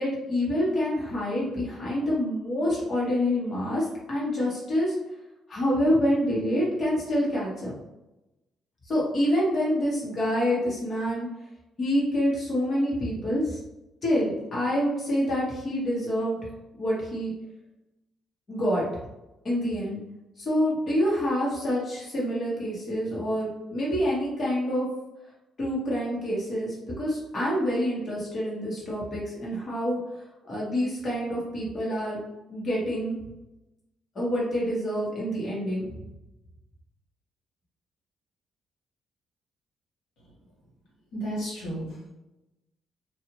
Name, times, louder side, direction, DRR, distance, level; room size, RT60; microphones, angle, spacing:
voice 1, 0.0-4.9 5.5-7.7 8.9-11.3 11.8-13.6 14.0-16.4 16.7-17.3 18.5-18.9 19.4-20.0 20.4-24.9 25.6-30.0 30.5-32.2 32.5-33.2 34.1-35.9, equal, 40° left, -6 dB, 1.3 m, -27 dB
voice 2, 41.1-42.1, right 1 dB, 90° left, -7 dB, 1.3 m, -34 dB
2.6 x 2.4 x 3.0 m, 0.94 s
cardioid pair, 90°, 0 cm